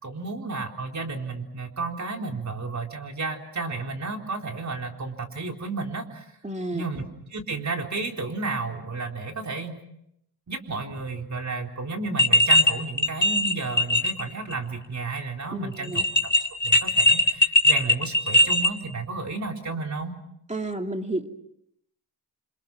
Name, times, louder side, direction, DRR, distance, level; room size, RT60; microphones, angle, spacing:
voice 1, 0.0-6.2 6.7-7.0 7.3-9.8 10.5-16.3 16.6-20.1, right 3 dB, 45° right, 3 dB, 4.0 m, -32 dB
voice 2, 6.4-6.9 15.5-16.1 20.5-21.3, right 2 dB, 15° right, 4 dB, 2.5 m, -31 dB
sound 1, 12.2-12.7 13.0-14.2 14.5-14.6 15.8-18.7, left 1 dB, 25° left, 2.6 m, -19 dB
29.0 x 26.0 x 6.2 m, 0.77 s
wide cardioid pair, 110°, 41 cm